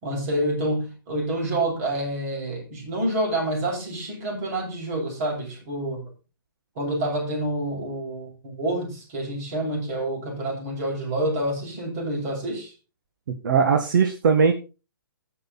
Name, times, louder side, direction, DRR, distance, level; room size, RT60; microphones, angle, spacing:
voice 1, 0.0-6.0 6.8-12.7, right 1 dB, 40° right, 2 dB, 7.2 m, -28 dB
voice 2, 13.3-14.5, right 5 dB, 55° right, 5 dB, 1.9 m, -20 dB
20.0 x 6.8 x 4.2 m, 0.32 s
hypercardioid pair, 135°, 12 cm